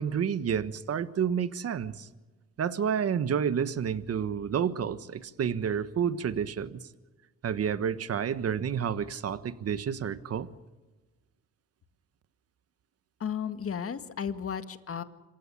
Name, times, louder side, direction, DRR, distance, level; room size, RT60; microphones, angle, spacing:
voice 1, 0.0-2.1 2.6-6.8 7.4-10.5, right 7 dB, 50° right, 13 dB, 1.4 m, -30 dB
voice 2, 13.2-15.0, left 7 dB, 50° left, 10 dB, 2.0 m, -34 dB
27.0 x 16.0 x 9.9 m, 1.2 s
cardioid pair, 90°, 30 cm